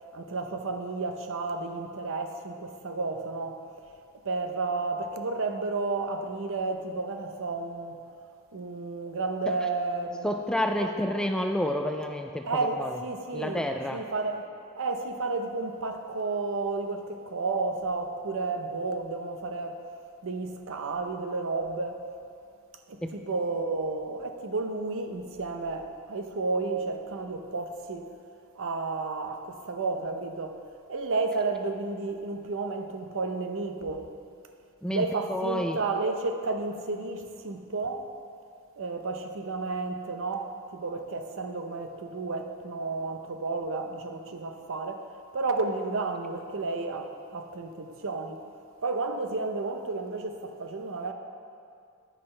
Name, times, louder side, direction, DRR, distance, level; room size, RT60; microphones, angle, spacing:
voice 1, 0.1-3.9 4.2-8.0 8.5-10.3 10.8-10.9 12.5-14.5 14.8-19.8 20.2-22.0 22.9-28.1 28.5-30.6 30.9-34.1 34.9-38.1 38.8-48.4 48.8-51.1, right 3 dB, 65° right, 0.7 m, -32 dB
voice 2, 10.2-13.0 13.3-14.0 23.0-23.1 34.8-35.8, left 1 dB, 5° left, 0.3 m, -29 dB
10.0 x 9.6 x 3.3 m
head